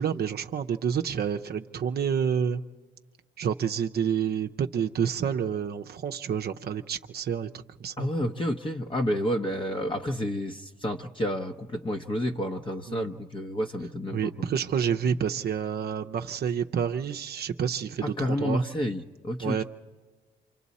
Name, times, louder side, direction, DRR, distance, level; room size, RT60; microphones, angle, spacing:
voice 1, 0.0-2.6 3.4-7.5 7.8-8.1 12.9-13.1 14.1-18.6 19.4-19.6, right 7 dB, 55° right, 5 dB, 0.6 m, -28 dB
voice 2, 8.0-14.3 18.0-19.6, equal, 25° left, 3 dB, 0.8 m, -30 dB
27.5 x 25.0 x 4.2 m, 1.4 s
cardioid pair, 90°, 20 cm